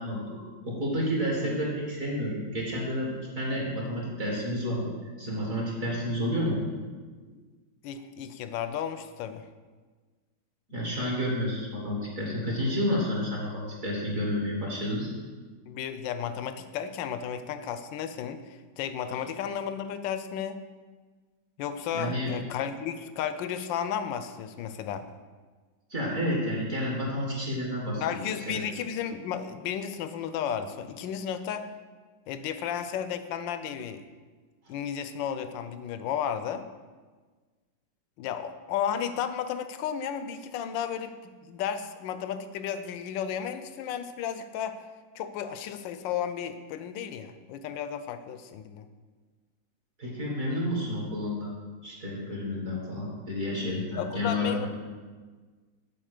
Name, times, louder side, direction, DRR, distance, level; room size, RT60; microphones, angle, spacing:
voice 1, 0.0-3.1 3.4-4.9 5.2-6.6 10.7-15.1 21.9-22.3 25.9-28.2 28.5-28.6 50.0-51.6 51.8-54.7, left 1 dB, 45° right, -3 dB, 2.1 m, -30 dB
voice 2, 7.8-9.4 15.7-20.6 21.6-25.0 28.0-31.7 32.3-34.0 34.7-36.6 38.2-44.8 45.1-48.9 54.0-54.7, left 8 dB, 80° left, 10 dB, 1.2 m, -33 dB
7.7 x 4.3 x 6.5 m, 1.4 s
omnidirectional pair, 2.0 m